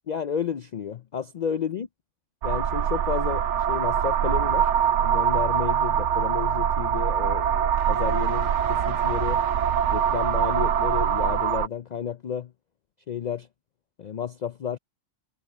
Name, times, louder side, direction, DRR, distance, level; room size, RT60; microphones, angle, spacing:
voice 1, 0.1-1.9 2.4-4.7 5.0-9.4 9.9-12.5 13.1-13.5 14.0-14.8, left 8 dB, 90° left, 0.3 m, -31 dB
sound 1, 2.4-11.7, right 8 dB, 65° right, 1.0 m, -23 dB
omnidirectional pair, 1.4 m